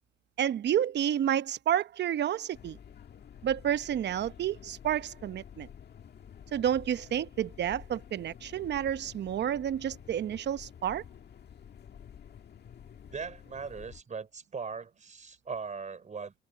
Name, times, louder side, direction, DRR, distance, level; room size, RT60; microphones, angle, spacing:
voice 1, 0.4-2.8 3.4-5.7 6.5-11.0, right 10 dB, 60° right, 0.8 m, -30 dB
sound 1, 2.5-14.0, left 8 dB, 55° left, 1.8 m, -50 dB
voice 2, 13.1-16.3, right 5 dB, 40° right, 4.2 m, -39 dB
cardioid pair, 90°, 20 cm